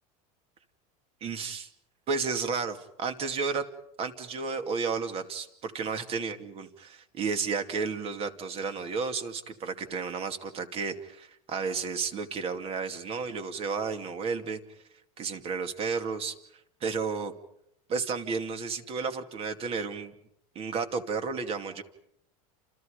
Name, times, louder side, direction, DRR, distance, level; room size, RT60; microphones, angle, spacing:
voice 1, 1.2-1.7 2.1-3.6 4.0-14.6 15.2-16.3 16.8-17.3 17.9-20.1 20.5-21.8, right 5 dB, 30° right, 8 dB, 2.6 m, -32 dB
29.5 x 28.5 x 5.2 m, 0.74 s
supercardioid pair, 150°, 18 cm